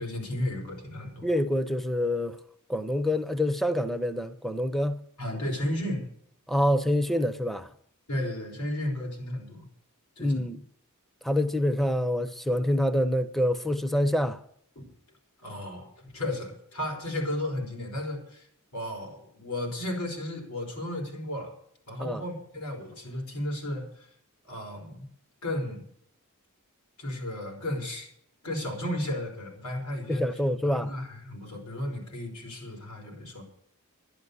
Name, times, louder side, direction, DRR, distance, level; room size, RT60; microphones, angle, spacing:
voice 1, 0.0-1.3 5.2-6.1 8.1-9.7 10.2-10.4 14.7-14.9 15.4-18.5 18.7-21.5 21.9-24.1 24.5-25.1 25.4-25.9 27.0-28.1 28.4-30.2 30.6-33.4, left 1 dB, 85° left, 5.0 m, -34 dB
voice 2, 1.2-2.4 2.7-5.0 6.5-7.7 10.2-10.6 11.2-14.4 22.0-22.2 30.1-30.9, left 1 dB, ahead, 0.6 m, -26 dB
11.5 x 11.0 x 6.9 m
head